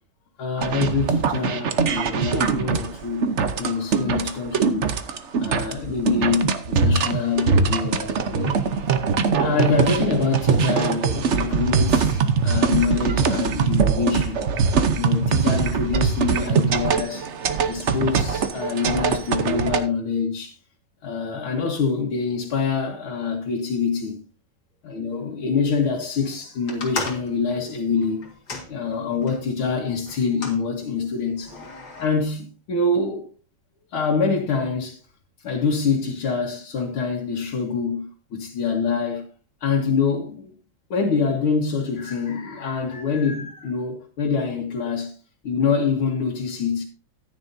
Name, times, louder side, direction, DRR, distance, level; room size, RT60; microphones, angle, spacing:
voice 1, 0.4-3.3 3.6-4.9 5.4-8.9 9.3-14.4 14.9-17.3 17.7-20.6 21.0-24.2 24.8-28.3 28.7-31.5 32.0-33.3 33.9-35.0 35.4-38.1 38.4-39.2 39.6-40.5 40.9-45.1 45.4-46.8, left 5 dB, 80° left, 2.3 m, -25 dB
sound 1, 0.6-19.8, right 5 dB, 55° right, 0.7 m, -22 dB
sound 2, 26.7-29.4 30.1-30.6 31.4-32.1, left 3 dB, 50° left, 2.4 m, -35 dB
14.0 x 9.7 x 2.7 m
omnidirectional pair, 2.3 m